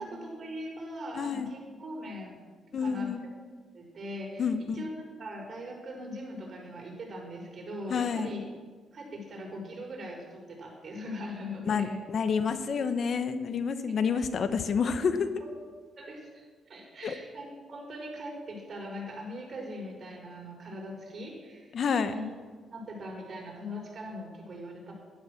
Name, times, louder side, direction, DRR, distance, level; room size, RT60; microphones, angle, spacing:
voice 1, 0.0-2.4 2.8-3.1 3.7-4.4 4.7-8.4 8.9-12.0 13.8-13.9 15.4-15.5 16.0-21.7 22.0-22.2 22.7-24.9, equal, 45° right, -1 dB, 5.1 m, -40 dB
voice 2, 1.1-1.6 2.7-3.2 4.4-4.9 7.9-8.3 11.6-15.3 17.0-17.1 21.7-22.1, left 6 dB, 55° left, 10 dB, 1.0 m, -29 dB
12.0 x 11.5 x 6.5 m, 1.5 s
cardioid pair, 90°, 0 cm